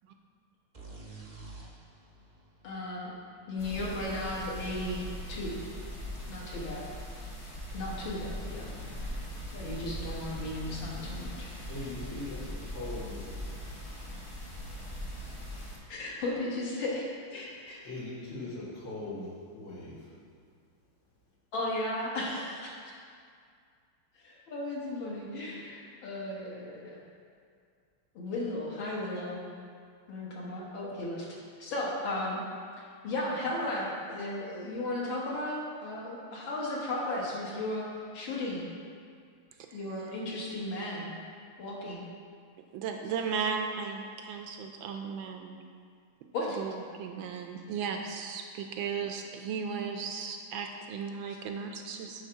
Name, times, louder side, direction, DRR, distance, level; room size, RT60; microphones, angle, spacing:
sound 1, 0.7-4.4, right 3 dB, 40° right, 0.5 m, -50 dB
voice 1, 2.6-3.1 3.5-5.0 5.3-5.5 6.3-6.8 7.7-8.6 9.5-11.5 15.9-17.8 21.5-22.7 24.2-27.0 28.2-29.4 30.1-31.3 31.6-32.4 33.0-37.9 38.1-38.7 39.7-41.1 41.6-42.0 46.3-46.6, left 1 dB, 65° left, -4 dB, 2.1 m, -35 dB
sound 2, 3.6-15.8, equal, 45° left, 0.4 m, -40 dB
voice 2, 11.7-13.4 17.8-20.1, left 2 dB, 85° left, -9 dB, 3.0 m, -40 dB
voice 3, 42.7-45.6 46.6-52.2, right 6 dB, 75° right, 4 dB, 1.2 m, -35 dB
9.1 x 3.4 x 5.6 m, 2.2 s
omnidirectional pair, 2.4 m